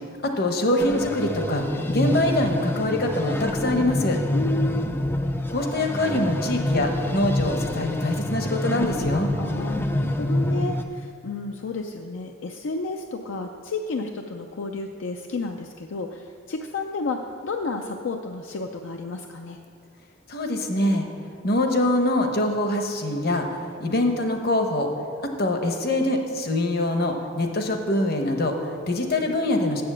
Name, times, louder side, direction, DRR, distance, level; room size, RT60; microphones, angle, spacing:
voice 1, 0.2-4.2 5.5-9.3 20.3-21.1 21.4-24.9 25.2-29.8, left 1 dB, 50° left, 4 dB, 0.9 m, -24 dB
sound 1, 0.8-10.8, left 1 dB, 10° left, 0.3 m, -27 dB
voice 2, 4.3-4.9 9.4-19.6, left 3 dB, 75° left, 4 dB, 0.5 m, -32 dB
7.4 x 7.0 x 7.4 m, 2.3 s
head